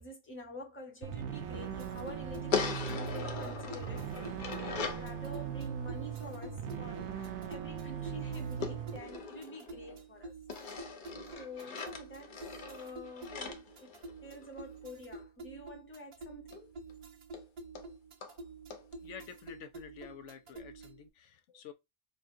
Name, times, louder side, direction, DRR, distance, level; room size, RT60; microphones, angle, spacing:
voice 1, 0.0-10.3 11.3-16.7, equal, 10° left, 0.9 m, -48 dB
sound 1, 1.0-9.0, right 7 dB, 85° right, 1.0 m, -39 dB
sound 2, 1.5-21.1, right 3 dB, 55° right, 0.3 m, -49 dB
sound 3, 2.5-5.1 8.6-10.0 10.5-14.6 16.5-16.6 16.9-17.0 17.3-17.4 17.7-17.9 18.2-18.3 18.7-18.8, left 5 dB, 50° left, 0.8 m, -39 dB
voice 2, 19.0-21.7, left 7 dB, 85° left, 1.0 m, -49 dB
5.2 x 2.4 x 2.6 m
omnidirectional pair, 1.2 m